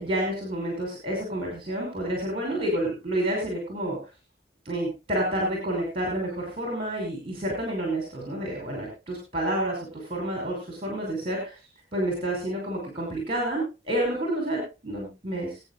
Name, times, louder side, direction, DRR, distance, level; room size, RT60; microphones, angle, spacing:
voice 1, 0.0-4.0 4.7-11.6 11.9-15.6, right 1 dB, 30° right, 0 dB, 5.5 m, -29 dB
23.5 x 9.7 x 2.3 m, 0.30 s
head